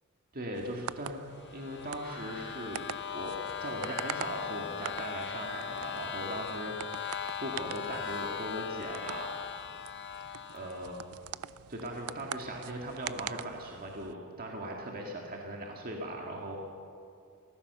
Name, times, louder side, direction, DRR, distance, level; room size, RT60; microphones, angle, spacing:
voice 1, 0.3-1.2 1.5-9.3 10.5-11.0 11.7-16.6, right 1 dB, 40° right, 0 dB, 2.0 m, -39 dB
sound 1, 0.5-14.1, right 9 dB, 75° right, 0.4 m, -45 dB
sound 2, 1.4-11.0, left 9 dB, 50° left, 0.8 m, -39 dB
28.5 x 14.5 x 6.8 m, 2.5 s
head